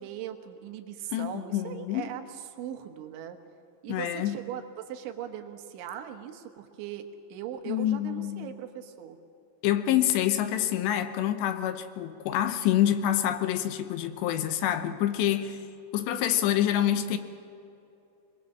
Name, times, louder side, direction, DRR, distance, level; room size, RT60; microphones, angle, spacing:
voice 1, 0.0-3.4 3.8-9.2, right 10 dB, 80° right, 3.6 m, -39 dB
voice 2, 1.1-2.1 3.9-4.4 7.7-8.5 9.6-15.6 15.9-17.2, left 11 dB, 75° left, 2.9 m, -27 dB
23.0 x 22.0 x 7.4 m
omnidirectional pair, 5.3 m